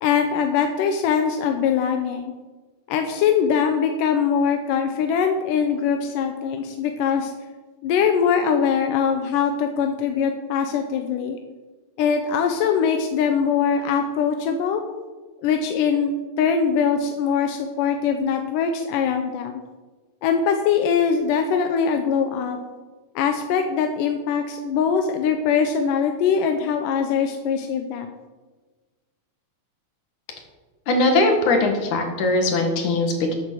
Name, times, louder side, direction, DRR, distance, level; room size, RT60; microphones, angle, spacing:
voice 1, 0.0-2.3 2.9-7.3 7.8-11.4 12.0-14.8 15.4-19.6 20.2-22.6 23.2-28.1, left 7 dB, 90° left, 5 dB, 2.5 m, -22 dB
voice 2, 30.9-33.4, left 2 dB, 70° left, 4 dB, 3.3 m, -20 dB
14.5 x 8.6 x 6.3 m, 1.3 s
omnidirectional pair, 3.6 m